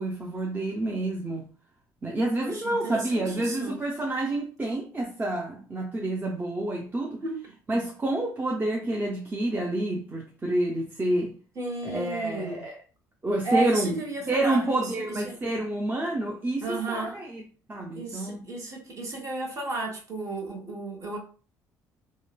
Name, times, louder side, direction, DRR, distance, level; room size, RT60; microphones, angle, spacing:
voice 1, 0.0-1.5 2.0-7.2 7.7-11.3 11.8-12.8 13.2-14.0 14.3-17.4 17.7-18.4, right 1 dB, 25° right, 0.5 m, -28 dB
voice 2, 2.4-3.7 7.2-7.4 11.5-12.6 13.4-15.3 16.6-17.2 17.9-21.2, right 3 dB, 40° right, 1.1 m, -33 dB
3.0 x 2.1 x 2.2 m
hypercardioid pair, 65°, 8 cm